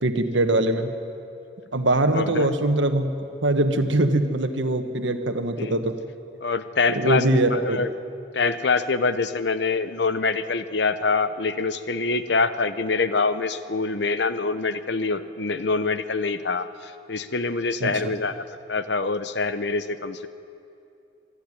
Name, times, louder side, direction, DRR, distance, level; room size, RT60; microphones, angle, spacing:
voice 1, 0.0-0.9 1.7-3.1 3.4-5.9 6.9-7.8 17.8-18.2, right 1 dB, 90° right, 7 dB, 1.5 m, -22 dB
voice 2, 2.1-2.5 5.6-5.8 6.4-7.9 8.3-20.3, left 4 dB, 70° left, 12 dB, 0.9 m, -25 dB
26.0 x 11.5 x 10.0 m, 2.7 s
head